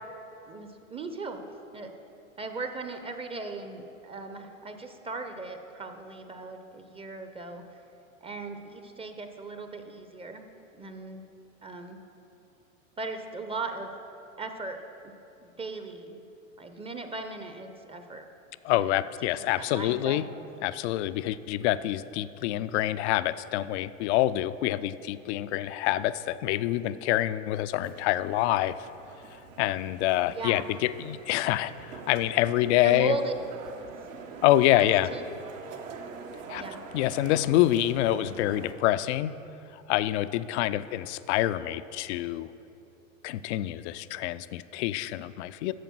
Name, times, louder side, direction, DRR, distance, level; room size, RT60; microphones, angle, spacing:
voice 1, 0.5-1.4 1.7-1.9 2.4-7.6 8.2-10.4 10.7-11.3 11.6-12.0 13.0-13.9 14.4-14.8 15.0-15.1 15.4-16.2 16.6-18.3 18.7-19.0 19.6-20.2 30.3-30.7 32.8-33.3 34.7-35.3 36.6-36.8, right 3 dB, 15° right, 6 dB, 0.6 m, -37 dB
voice 2, 18.6-20.3 20.6-28.8 29.6-33.2 34.4-35.1 36.5-36.6 36.9-39.3 39.7-42.5 43.2-45.7, left 14 dB, 60° left, 15 dB, 0.5 m, -26 dB
sound 1, 27.8-38.7, right 5 dB, 70° right, 1.3 m, -45 dB
9.4 x 6.9 x 6.1 m, 2.9 s
hypercardioid pair, 100°, 39 cm